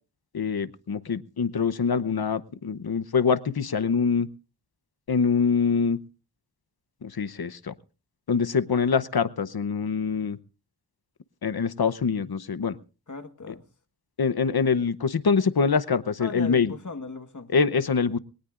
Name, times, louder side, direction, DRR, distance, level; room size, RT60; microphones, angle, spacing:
voice 1, 0.3-4.3 5.1-6.0 7.0-7.7 8.3-10.4 11.4-12.8 14.2-16.7 17.5-18.2, left 5 dB, 65° left, 0.9 m, -24 dB
voice 2, 13.1-13.6 16.2-17.6, left 4 dB, 45° left, 1.6 m, -38 dB
21.5 x 18.0 x 2.5 m
wide cardioid pair, 75°, 41 cm